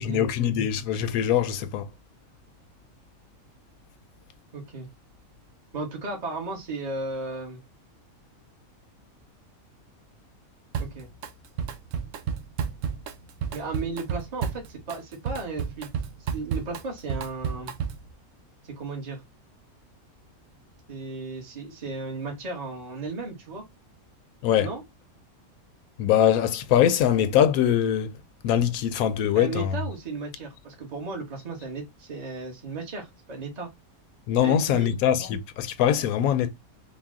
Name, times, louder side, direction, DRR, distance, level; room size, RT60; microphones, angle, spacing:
voice 1, 0.0-1.9 24.4-24.7 26.0-28.2 28.4-29.8 34.3-36.5, left 10 dB, 80° left, 1.0 m, -22 dB
voice 2, 4.5-4.9 5.7-7.6 10.8-11.1 13.5-15.9 16.3-17.7 18.6-19.2 20.9-23.6 24.6-24.8 29.3-33.7 34.4-34.9, right 3 dB, 30° right, 1.2 m, -35 dB
Drum kit, 10.7-11.3 11.6-18.1, right 7 dB, 70° right, 0.9 m, -32 dB
4.0 x 2.2 x 3.5 m
omnidirectional pair, 1.5 m